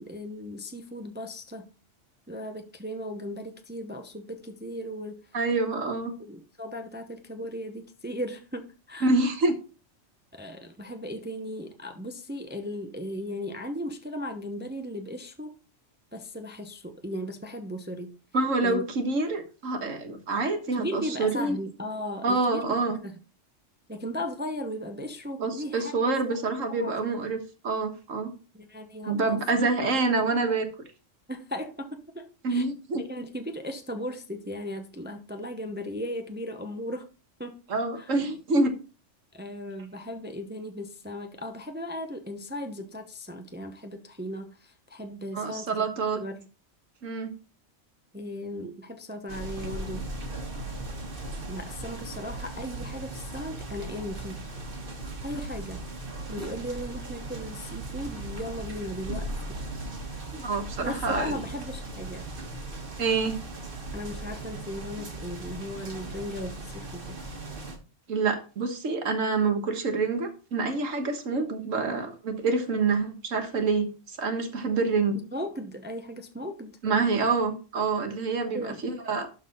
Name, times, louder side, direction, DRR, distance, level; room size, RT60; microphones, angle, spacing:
voice 1, 0.0-1.7 2.3-5.3 5.7-5.8 6.2-9.2 10.3-15.6 16.1-18.1 18.6-18.8 20.7-22.8 23.0-23.1 23.9-26.4 26.7-27.1 28.5-29.4 31.3-32.7 33.1-37.1 37.4-37.6 37.9-38.2 39.3-46.5 48.1-50.1 51.5-54.4 55.2-55.8 56.3-59.6 60.8-62.3 63.9-67.2 75.3-76.8 78.5-78.9, equal, 10° right, 0.7 m, -37 dB
voice 2, 5.3-6.1 9.0-9.5 18.3-21.6 22.2-23.0 25.4-28.3 29.1-30.7 32.4-33.0 37.7-38.8 45.3-46.2 47.0-47.3 60.3-61.3 63.0-63.4 68.1-75.2 76.8-79.3, right 3 dB, 85° right, 1.8 m, -27 dB
sound 1, 49.3-67.8, right 2 dB, 45° right, 1.6 m, -38 dB
12.0 x 4.1 x 3.9 m
omnidirectional pair, 1.3 m